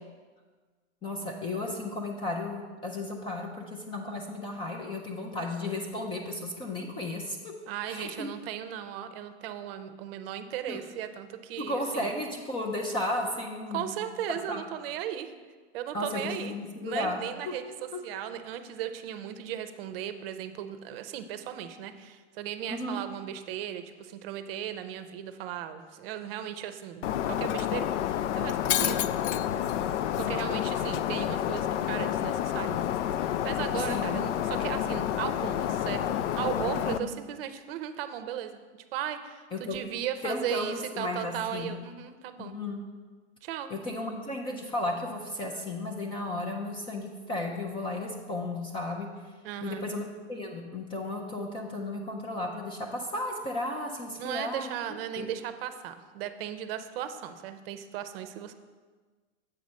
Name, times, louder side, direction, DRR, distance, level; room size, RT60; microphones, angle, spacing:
voice 1, 1.0-7.5 7.9-8.3 10.7-10.8 11.6-13.9 14.3-14.6 15.9-17.2 17.5-17.6 17.9-18.0 22.7-23.0 33.9-34.1 36.7-37.1 39.5-39.8 40.2-41.7 42.4-42.8 43.7-49.1 49.6-54.7 55.2-55.3, left 2 dB, 15° left, 1 dB, 0.4 m, -34 dB
voice 2, 7.7-12.1 13.7-15.3 15.7-16.5 16.8-29.0 30.2-32.8 33.2-38.6 38.9-42.6 43.4-43.7 49.4-49.9 54.2-58.5, right 10 dB, 55° right, 9 dB, 0.6 m, -36 dB
Shatter, 27.0-37.0, left 10 dB, 85° left, 0.5 m, -29 dB
7.9 x 4.1 x 6.2 m, 1.4 s
supercardioid pair, 145°, 35 cm